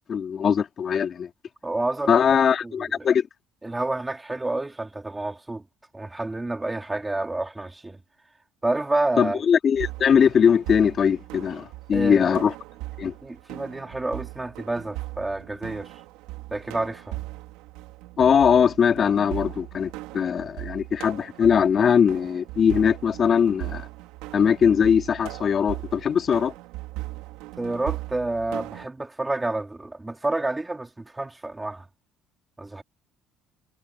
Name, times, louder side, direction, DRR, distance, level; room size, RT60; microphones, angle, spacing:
voice 1, 0.1-1.3 2.1-3.3 9.2-12.5 13.0-13.1 18.2-23.9 24.3-26.5, left 7 dB, 40° left, 3.2 m, -21 dB
voice 2, 1.6-2.2 2.6-3.1 3.6-5.6 5.9-8.0 8.6-9.4 11.9-12.4 13.2-15.9 16.5-17.2 27.6-31.8 32.6-32.8, right 2 dB, 10° right, 3.3 m, -29 dB
sound 1, 9.7-28.9, right 19 dB, 85° right, 3.4 m, -38 dB
cardioid pair, 115°, 0 cm